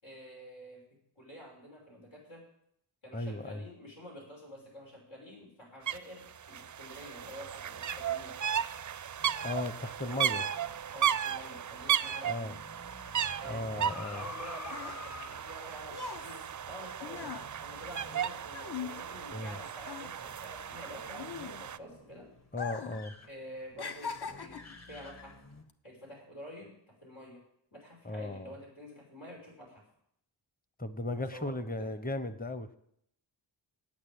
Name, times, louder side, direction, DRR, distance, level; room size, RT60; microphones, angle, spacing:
voice 1, 0.0-0.8 1.2-2.4 3.0-8.4 10.0-10.4 10.9-12.6 13.4-17.3 17.6-22.3 23.3-24.6 24.9-25.3 25.8-27.4 27.7-29.8 31.2-31.9, equal, 80° left, -2 dB, 6.0 m, -49 dB
voice 2, 3.1-3.6 9.4-10.5 12.3-12.5 13.4-14.2 19.3-19.6 22.5-23.1 28.0-28.5 30.8-32.8, left 2 dB, 20° left, 11 dB, 0.9 m, -36 dB
sound 1, 5.9-6.0 6.2-21.8, right 9 dB, 40° right, 0.4 m, -35 dB
sound 2, 9.2-19.1 19.5-19.6 20.1-25.6, left 3 dB, 35° left, 1.4 m, -51 dB
sound 3, 14.5-19.5 19.8-22.0 22.5-23.1 23.3-24.8 25.5-25.7, left 6 dB, 55° left, 1.0 m, -42 dB
9.2 x 8.6 x 8.6 m, 0.73 s
wide cardioid pair, 75°, 48 cm